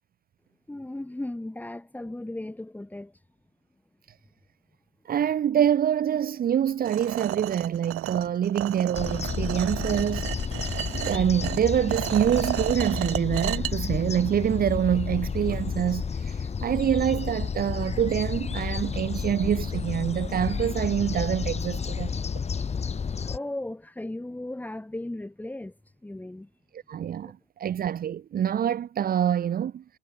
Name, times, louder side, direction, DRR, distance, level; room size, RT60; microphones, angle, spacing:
voice 1, 0.7-3.2 23.2-25.7 26.0-26.5, left 1 dB, 5° left, 5.1 m, -36 dB
voice 2, 5.1-10.3 10.9-22.1 26.7-29.8, right 9 dB, 30° right, 2.0 m, -26 dB
sound 1, 6.9-13.7, right 15 dB, 45° right, 7.0 m, -33 dB
sound 2, 8.9-23.4, left 6 dB, 20° left, 5.3 m, -31 dB
supercardioid pair, 115°, 31 cm